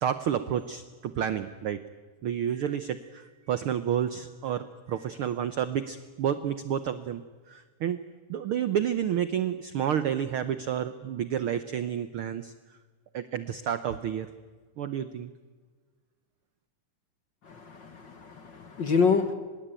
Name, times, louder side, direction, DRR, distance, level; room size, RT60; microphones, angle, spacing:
voice 1, 0.0-1.8 2.2-8.0 8.3-12.5 13.1-14.3 14.8-15.3, right 9 dB, 90° right, 12 dB, 1.1 m, -30 dB
voice 2, 17.4-19.3, left 5 dB, 50° left, 9 dB, 1.5 m, -27 dB
25.0 x 21.5 x 9.0 m, 1.4 s
omnidirectional pair, 3.7 m